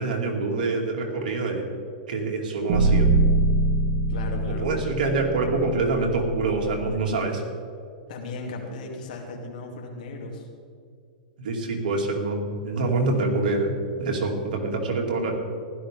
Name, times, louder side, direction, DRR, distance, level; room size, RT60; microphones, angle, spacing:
voice 1, 0.0-1.6 2.1-3.1 4.5-7.4 11.4-15.4, right 3 dB, 80° right, 1 dB, 2.7 m, -26 dB
sound 1, 2.7-6.9, right 2 dB, 55° right, 2.1 m, -23 dB
voice 2, 4.1-4.7 8.1-10.5 14.4-14.7, left 3 dB, 70° left, 0 dB, 3.0 m, -36 dB
15.5 x 12.5 x 3.8 m, 2.3 s
supercardioid pair, 150°, 5 cm